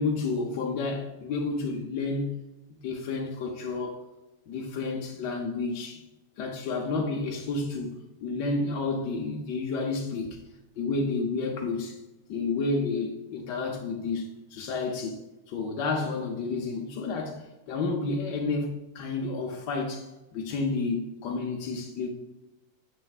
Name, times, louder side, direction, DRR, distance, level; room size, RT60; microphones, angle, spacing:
voice 1, 0.0-2.4 2.7-4.1 4.5-6.0 6.4-10.4 10.8-12.0 12.3-15.2 15.5-22.1, left 3 dB, 65° left, 1.1 m, -30 dB
6.5 x 6.3 x 2.4 m
omnidirectional pair, 2.4 m